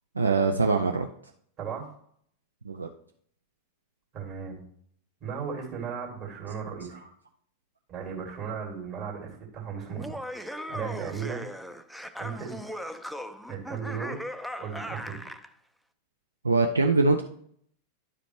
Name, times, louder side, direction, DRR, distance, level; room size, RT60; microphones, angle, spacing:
voice 1, 0.2-1.1 2.7-2.9 16.4-17.2, right 3 dB, 80° right, 4 dB, 0.4 m, -23 dB
voice 2, 4.1-4.6 5.2-7.0 7.9-10.2 10.7-11.4 12.2-12.6 13.5-14.2 14.6-15.3, right 6 dB, 40° right, -1 dB, 2.4 m, -36 dB
Laughter, 9.9-15.5, equal, ahead, 0.5 m, -38 dB
11.0 x 5.0 x 3.1 m, 0.64 s
figure-of-eight pair, 90°, 0 cm